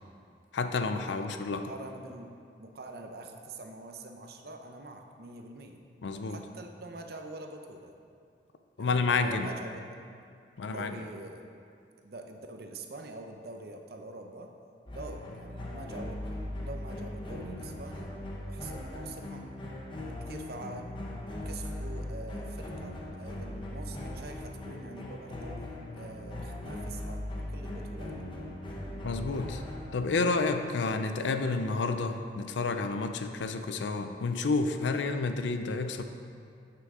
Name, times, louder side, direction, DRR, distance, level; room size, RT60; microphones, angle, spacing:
voice 1, 0.5-1.7 6.0-6.4 8.8-9.5 10.6-10.9 29.0-29.6 29.9-36.0, left 3 dB, 85° left, 7 dB, 0.5 m, -30 dB
voice 2, 1.5-2.3 2.6-5.8 6.3-7.9 8.8-9.8 10.6-11.5 12.0-14.5 14.9-16.2 16.6-18.1 18.5-19.5 20.3-20.9 21.3-25.6 25.9-28.1, right 2 dB, 60° right, 4 dB, 0.7 m, -45 dB
sound 1, 14.9-29.9, left 1 dB, 25° left, 1.0 m, -39 dB
9.6 x 5.7 x 3.7 m, 2.3 s
head